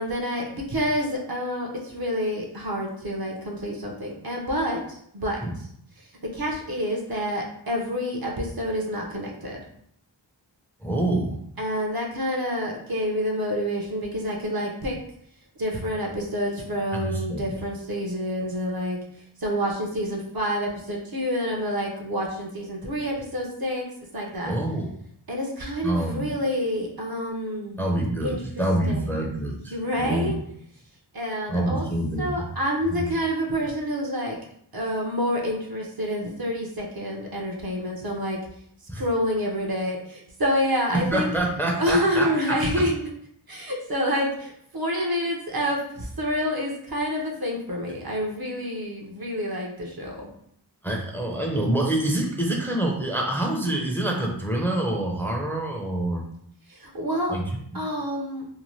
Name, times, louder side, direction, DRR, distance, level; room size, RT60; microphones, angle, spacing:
voice 1, 0.0-5.7 6.3-9.6 11.6-15.0 15.6-19.0 19.4-23.8 24.1-24.5 25.3-27.8 28.2-29.2 29.7-30.4 31.1-31.9 32.2-34.4 34.7-38.4 38.9-41.3 41.8-43.0 43.5-50.3 56.7-57.4 57.7-58.5, equal, 55° right, 0 dB, 0.7 m, -28 dB
voice 2, 10.8-11.4 16.9-17.5 24.4-24.9 25.8-26.3 27.8-30.4 31.5-32.4 32.9-33.1 38.9-39.0 40.9-42.6 50.8-56.2 57.3-57.8, right 1 dB, 5° left, -1 dB, 0.5 m, -26 dB
2.7 x 2.2 x 3.1 m, 0.68 s
wide cardioid pair, 45°, 45 cm